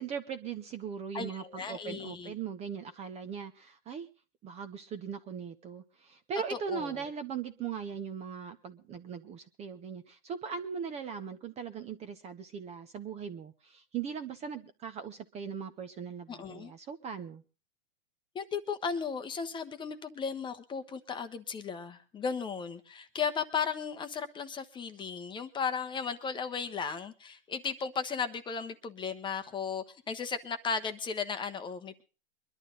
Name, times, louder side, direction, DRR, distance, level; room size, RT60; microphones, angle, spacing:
voice 1, 0.0-4.1 4.4-17.4, right 7 dB, 20° right, 10 dB, 0.8 m, -39 dB
voice 2, 1.1-2.3 6.5-7.1 16.3-16.7 18.3-32.0, left 6 dB, 15° left, 9 dB, 0.9 m, -35 dB
23.0 x 11.5 x 3.8 m, 0.34 s
hypercardioid pair, 140°, 35 cm